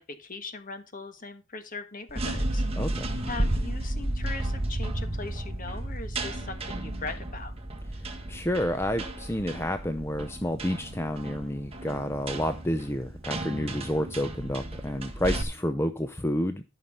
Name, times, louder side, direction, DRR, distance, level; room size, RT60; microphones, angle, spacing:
voice 1, 0.0-2.9 3.3-7.5, left 3 dB, 40° left, 9 dB, 1.5 m, -40 dB
sound 1, 2.1-15.4, right 1 dB, 30° right, 1.8 m, -33 dB
voice 2, 2.8-3.1 8.3-16.6, left 1 dB, 10° left, 8 dB, 0.6 m, -29 dB
13.0 x 5.8 x 5.5 m, 0.28 s
head